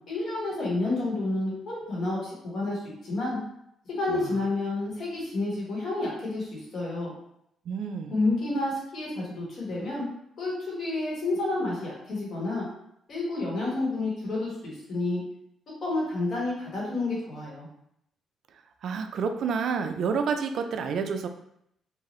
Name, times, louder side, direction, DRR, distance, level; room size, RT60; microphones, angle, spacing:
voice 1, 0.1-3.4 3.9-7.1 8.1-10.1 10.4-12.6 13.1-15.2 15.8-17.7, left 2 dB, 55° left, -5 dB, 1.4 m, -30 dB
voice 2, 7.7-8.1 18.8-21.3, right 5 dB, 70° right, 6 dB, 0.3 m, -29 dB
2.7 x 2.3 x 3.0 m, 0.74 s
cardioid pair, 90°, 0 cm